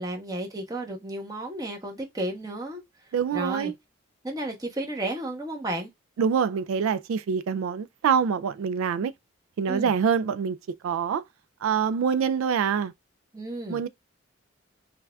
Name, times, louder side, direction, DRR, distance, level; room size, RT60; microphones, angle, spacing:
voice 1, 0.0-3.7 4.2-5.9 9.7-9.9 13.3-13.9, right 1 dB, 15° right, 0.9 m, -33 dB
voice 2, 3.1-3.7 6.2-9.1 9.6-10.6 10.8-11.2 11.6-12.9 13.7-13.9, right 7 dB, 80° right, 0.3 m, -25 dB
5.6 x 2.4 x 2.3 m
head